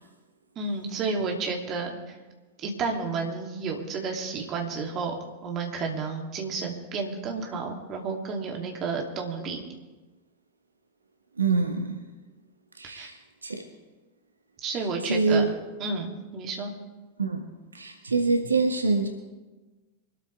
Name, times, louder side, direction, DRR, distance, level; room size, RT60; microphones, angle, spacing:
voice 1, 0.6-2.0 2.6-5.1 5.4-9.6 12.9-13.1 14.6-15.4 15.8-16.7, right 4 dB, 35° right, 1 dB, 2.9 m, -31 dB
voice 2, 11.4-12.0 12.8-13.6 15.0-15.5 17.2-17.4 17.7-19.1, right 4 dB, 75° right, 5 dB, 1.3 m, -25 dB
24.5 x 13.0 x 3.5 m, 1.2 s
figure-of-eight pair, 90°, 0 cm